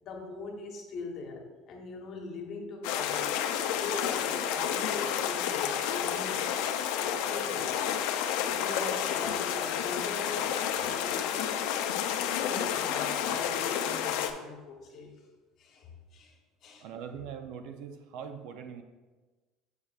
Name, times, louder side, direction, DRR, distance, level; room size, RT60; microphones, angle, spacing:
voice 1, 0.0-3.3 3.8-6.6 7.0-15.1 15.6-16.4 16.6-16.9, left 3 dB, 35° left, 1 dB, 1.0 m, -42 dB
sound 1, 2.8-14.3, left 9 dB, 70° left, 0.5 m, -30 dB
voice 2, 16.8-18.8, right 7 dB, 60° right, 8 dB, 0.5 m, -42 dB
7.1 x 6.3 x 2.4 m, 1.3 s
cardioid pair, 170°, 0 cm